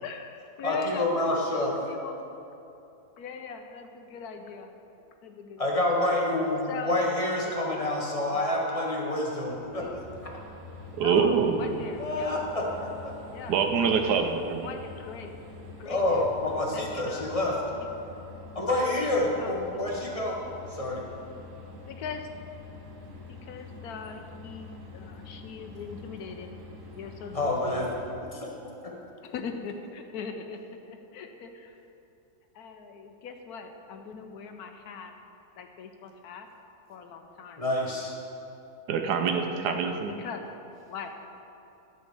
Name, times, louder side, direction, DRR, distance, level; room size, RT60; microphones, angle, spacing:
voice 1, 0.0-1.1 1.5-2.3 3.2-4.7 5.2-5.7 6.7-7.1 7.4-7.6 8.3-8.4 9.7-10.0 11.0-12.5 13.3-13.6 14.6-15.4 15.8-16.3 16.7-17.3 17.8-17.9 18.2-18.3 19.4-19.9 21.9-22.3 23.3-26.5 26.9-27.8 29.2-31.8 32.5-35.1 35.6-36.5 36.9-37.6 39.5-39.8 40.1-40.4 40.9-41.4, left 6 dB, 75° left, 5 dB, 1.2 m, -41 dB
voice 2, 0.6-1.7 5.6-9.9 12.0-13.1 15.8-17.6 18.5-20.4 20.7-21.0 27.3-27.9 28.3-28.5 37.6-38.1, left 1 dB, 25° left, -2 dB, 1.0 m, -28 dB
sound 1, 9.4-28.1, left 3 dB, 60° right, 1.5 m, -46 dB
voice 3, 11.0-11.7 13.5-14.7 38.9-40.1, right 6 dB, 85° right, 5 dB, 1.3 m, -25 dB
11.5 x 4.2 x 6.7 m, 2.8 s
omnidirectional pair, 1.7 m